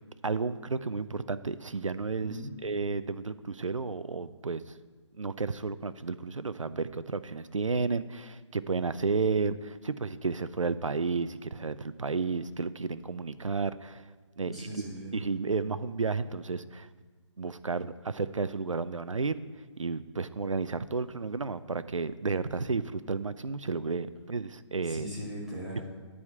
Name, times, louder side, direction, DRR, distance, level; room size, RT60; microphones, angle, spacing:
voice 1, 0.2-2.4 2.6-4.7 5.2-14.1 14.4-14.5 15.1-16.9 17.4-19.4 19.8-25.1, right 4 dB, 90° right, 14 dB, 0.4 m, -32 dB
voice 2, 14.4-15.1 24.8-25.9, equal, ahead, -8 dB, 1.6 m, -39 dB
9.4 x 4.9 x 7.7 m, 1.4 s
figure-of-eight pair, 145°, 16 cm